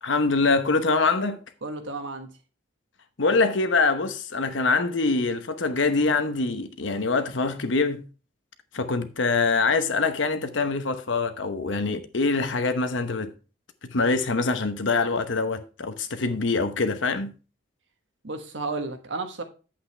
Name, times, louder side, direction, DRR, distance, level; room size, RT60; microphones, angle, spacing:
voice 1, 0.0-1.4 3.2-8.0 8.7-13.3 13.8-17.3, left 3 dB, 80° left, 1.0 m, -24 dB
voice 2, 1.6-2.3 18.2-19.4, right 3 dB, 80° right, 1.3 m, -32 dB
8.7 x 8.0 x 3.3 m
head